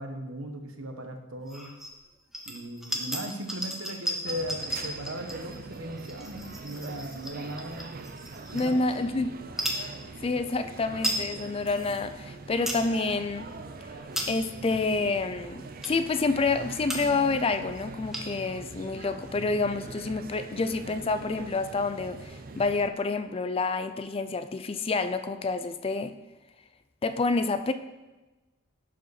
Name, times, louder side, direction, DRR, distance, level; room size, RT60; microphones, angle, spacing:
voice 1, 0.0-1.7 2.5-8.0 8.5-8.8, equal, 70° right, 5 dB, 1.1 m, -38 dB
sound 1, 1.5-1.9 2.3-9.0 9.5-9.8 10.5-10.6 10.8-11.3 11.7-11.8 12.3-12.9 13.3-13.5 13.9-14.6 15.2-15.3 15.8-16.1 16.6-16.7 16.9-17.3 17.6-17.7 17.8-18.5, equal, ahead, 1.0 m, -35 dB
sound 2, 4.3-22.9, right 3 dB, 45° right, 0.5 m, -43 dB
voice 2, 8.5-9.4 10.2-13.5 14.3-26.1 27.0-27.7, left 3 dB, 25° left, 10 dB, 0.4 m, -28 dB
11.0 x 5.0 x 4.8 m, 1.1 s
head